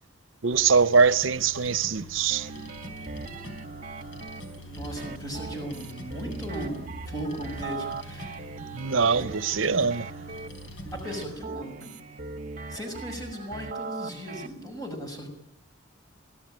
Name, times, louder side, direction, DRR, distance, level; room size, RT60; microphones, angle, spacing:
voice 1, 0.4-2.5 8.7-10.1, right 5 dB, 80° right, 0.8 m, -23 dB
sound 1, 0.5-11.3, left 1 dB, 85° left, 4.2 m, -44 dB
sound 2, 2.3-14.5, right 3 dB, 40° right, 1.6 m, -40 dB
voice 2, 4.6-8.5 11.0-11.9 12.7-15.3, equal, 20° left, 6.5 m, -37 dB
26.0 x 17.5 x 8.9 m
head